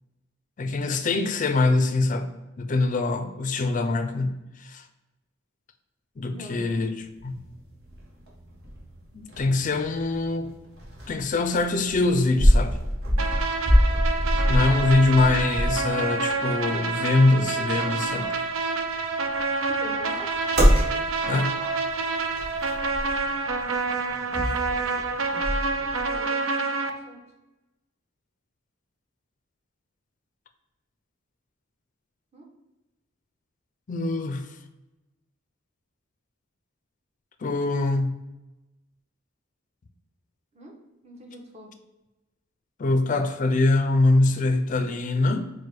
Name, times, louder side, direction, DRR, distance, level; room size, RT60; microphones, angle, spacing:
voice 1, 0.6-2.3 2.6-4.8 6.2-7.3 9.1-10.5 11.1-12.8 14.5-18.3 21.3-21.5 33.9-34.5 37.4-38.2 42.8-45.5, left 2 dB, 40° left, 8 dB, 0.4 m, -23 dB
voice 2, 6.3-6.9 13.1-13.3 19.7-20.3 25.8-26.4 26.8-27.2 32.3-32.5 40.5-40.7 41.0-41.7, left 1 dB, 35° right, 0 dB, 1.0 m, -42 dB
sound 1, 7.0-26.2, equal, 55° right, 1.3 m, -27 dB
sound 2, 13.2-26.9, right 4 dB, 85° right, 0.5 m, -28 dB
4.5 x 2.2 x 4.6 m, 1.0 s
head